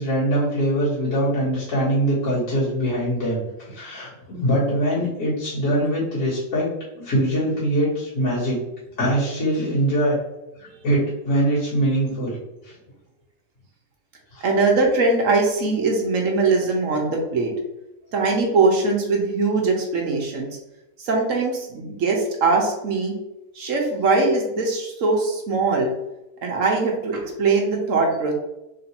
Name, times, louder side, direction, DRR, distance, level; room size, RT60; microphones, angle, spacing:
voice 1, 0.0-6.7 6.9-8.6 9.0-10.2 10.6-12.4 12.7-12.8 14.3-14.4, right 1 dB, 50° left, -10 dB, 2.1 m, -23 dB
voice 2, 14.4-17.5 18.1-20.5 21.0-23.1 23.5-25.9 26.4-28.3, right 3 dB, 55° right, 0 dB, 0.9 m, -21 dB
3.9 x 2.7 x 4.2 m, 0.94 s
omnidirectional pair, 2.0 m